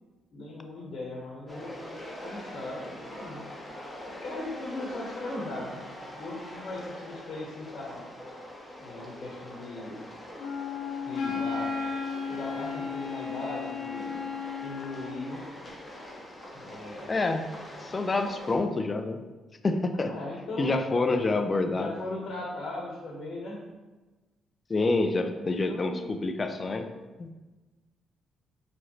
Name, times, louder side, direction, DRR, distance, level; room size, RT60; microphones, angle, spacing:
voice 1, 0.3-2.0 2.2-3.4 4.1-8.0 8.8-10.0 11.1-11.7 12.3-14.2 14.6-15.4 16.5-17.1 19.9-21.0 21.7-23.6 25.3-26.1, left 2 dB, 60° left, -3 dB, 1.0 m, -38 dB
sound 1, 1.5-18.6, left 1 dB, 15° left, 0.9 m, -43 dB
Wind instrument woodwind instrument, 10.4-15.2, left 6 dB, 90° left, 0.7 m, -34 dB
voice 2, 17.1-17.5 17.8-19.2 19.6-20.1 20.6-21.9 24.7-26.9 27.2-27.3, left 3 dB, 30° left, 7 dB, 0.4 m, -27 dB
4.6 x 3.1 x 2.8 m, 1.2 s
cardioid pair, 90°, 0 cm